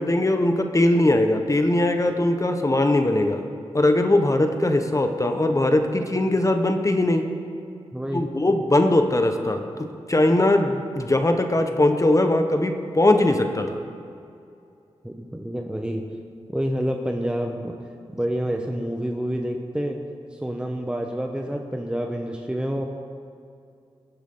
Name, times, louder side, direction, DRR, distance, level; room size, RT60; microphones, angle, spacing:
voice 1, 0.0-3.4 3.7-7.2 8.1-13.8, left 1 dB, 30° left, 6 dB, 1.3 m, -20 dB
voice 2, 7.9-8.3 15.0-16.0 16.5-17.7 18.1-20.0 20.3-22.8, equal, 10° right, 2 dB, 1.2 m, -28 dB
18.0 x 10.0 x 3.9 m, 2.5 s
cardioid pair, 40°, 11 cm